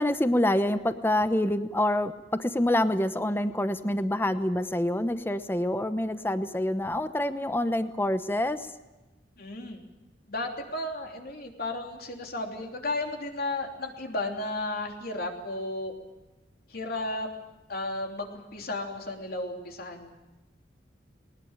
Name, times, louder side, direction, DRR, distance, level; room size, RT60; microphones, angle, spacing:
voice 1, 0.0-8.7, left 1 dB, 10° left, 11 dB, 0.9 m, -26 dB
voice 2, 9.4-9.8 10.3-15.9 16.7-17.3 17.7-20.1, left 2 dB, 55° left, 2 dB, 3.3 m, -34 dB
20.5 x 20.0 x 8.9 m, 1.1 s
head